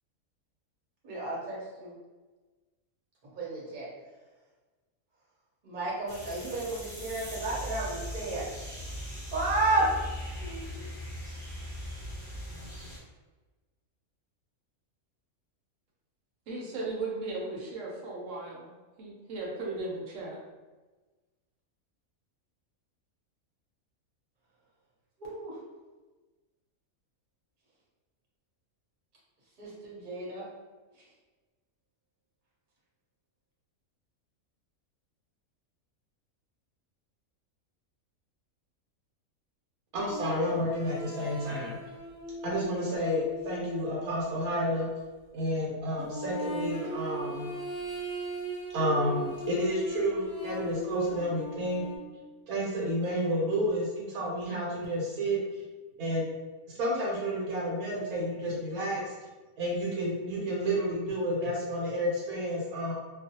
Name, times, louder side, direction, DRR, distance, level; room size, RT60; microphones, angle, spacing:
voice 1, 1.0-1.9 3.3-3.9 5.6-8.6 9.3-9.9 10.4-10.9 25.2-25.6 29.6-30.4, right 2 dB, 40° right, -6 dB, 0.8 m, -32 dB
sound 1, 6.1-13.0, equal, 30° left, 0.9 m, -39 dB
voice 2, 16.5-18.7 19.0-20.4, right 3 dB, 65° right, -3 dB, 1.0 m, -36 dB
voice 3, 39.9-41.8 42.4-44.9 45.3-47.5 48.7-51.8 52.5-55.4 56.0-56.2 56.8-59.1 59.6-62.9, equal, 85° right, -4 dB, 1.1 m, -30 dB
sound 2, 40.1-45.1 46.1-52.0, right 1 dB, 65° left, 0.7 m, -38 dB
2.4 x 2.3 x 2.7 m, 1.2 s
omnidirectional pair, 1.5 m